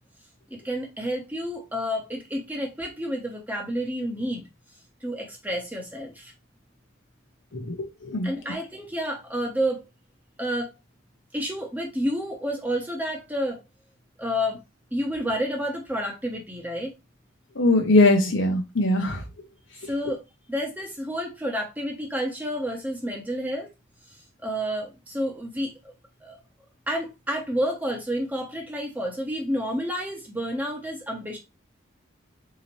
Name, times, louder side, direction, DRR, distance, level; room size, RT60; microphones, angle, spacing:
voice 1, 0.5-4.4 5.0-6.3 8.2-9.8 10.4-10.7 11.3-13.6 14.2-14.6 14.9-17.0 19.9-20.2 20.5-23.7 24.4-25.7 26.2-26.4 26.9-31.4, equal, 10° right, 0.9 m, -29 dB
voice 2, 17.6-19.2, left 2 dB, 70° left, 0.8 m, -20 dB
3.9 x 2.8 x 3.0 m
head